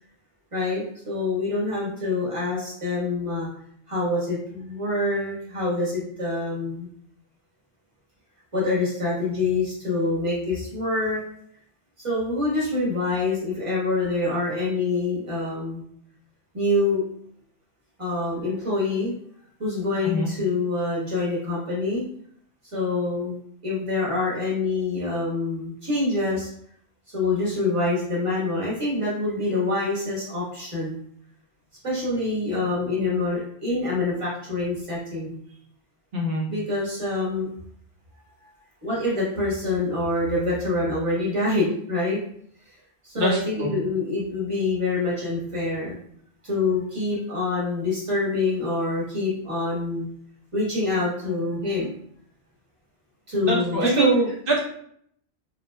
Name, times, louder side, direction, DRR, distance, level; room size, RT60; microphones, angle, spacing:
voice 1, 0.5-3.5 3.9-6.9 8.5-11.2 12.0-15.8 16.5-17.0 18.0-19.1 19.6-22.0 22.7-23.3 23.6-26.5 27.1-31.0 31.8-35.4 36.5-37.5 38.8-42.2 42.7-42.8 43.0-45.9 46.4-50.1 50.5-51.9 53.3-54.3, left 2 dB, 30° right, -7 dB, 1.3 m, -26 dB
voice 2, 36.1-36.4 43.2-43.3 43.6-43.7 53.4-54.1 54.5-54.6, equal, 55° right, -3 dB, 1.0 m, -23 dB
3.1 x 2.5 x 2.2 m, 0.66 s
omnidirectional pair, 1.1 m